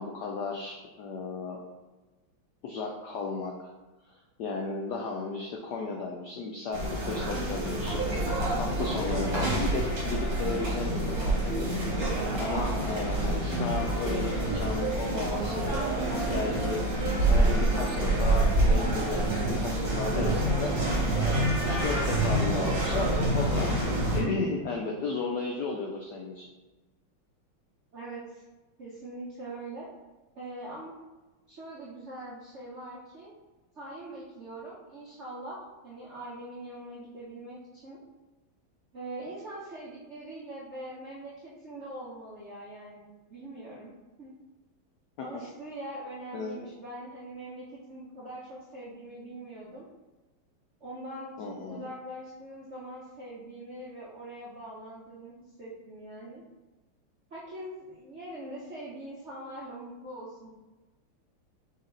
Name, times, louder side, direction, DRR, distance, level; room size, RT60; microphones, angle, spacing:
voice 1, 0.0-1.6 2.6-3.7 4.4-11.8 12.4-15.8 16.3-20.7 21.2-23.8 24.1-26.5 45.3-45.4 46.3-46.7 51.4-51.9, left 3 dB, 85° left, 0 dB, 0.9 m, -34 dB
sound 1, 6.7-24.2, right 1 dB, 45° right, 1.3 m, -27 dB
voice 2, 27.9-28.4 28.8-29.9 30.3-30.9 31.5-33.3 33.7-38.0 38.9-43.0 43.3-44.3 45.2-49.8 50.8-56.4 57.3-60.5, right 1 dB, 65° right, -7 dB, 0.7 m, -42 dB
4.1 x 3.3 x 3.8 m, 1.2 s
omnidirectional pair, 2.4 m